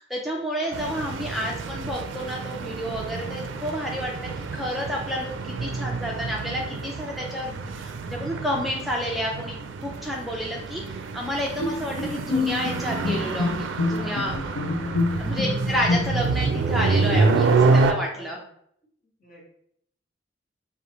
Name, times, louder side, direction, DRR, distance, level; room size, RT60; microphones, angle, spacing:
voice 1, 0.0-14.3 15.2-18.4, equal, ahead, -2 dB, 0.4 m, -30 dB
voice 2, 0.5-0.8 14.0-15.2 18.1-18.5 19.2-19.5, left 1 dB, 50° left, -3 dB, 1.4 m, -44 dB
sound 1, 0.7-17.9, right 3 dB, 90° right, 0.4 m, -27 dB
Bowed string instrument, 11.6-16.4, left 3 dB, 75° left, 0.5 m, -27 dB
5.2 x 2.4 x 2.9 m, 0.70 s
head